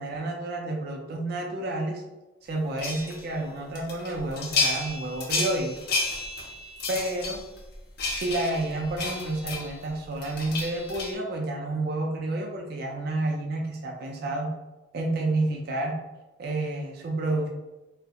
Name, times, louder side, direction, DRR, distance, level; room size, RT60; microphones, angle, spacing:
voice 1, 0.0-2.0 2.5-5.7 6.9-7.4 8.1-14.5 14.9-16.0 16.4-17.5, right 2 dB, 55° right, 0 dB, 0.4 m, -30 dB
sound 1, 2.8-3.2 3.7-9.9 10.2-11.1, left 3 dB, 60° left, 0.5 m, -31 dB
2.3 x 2.1 x 2.7 m, 1.0 s
head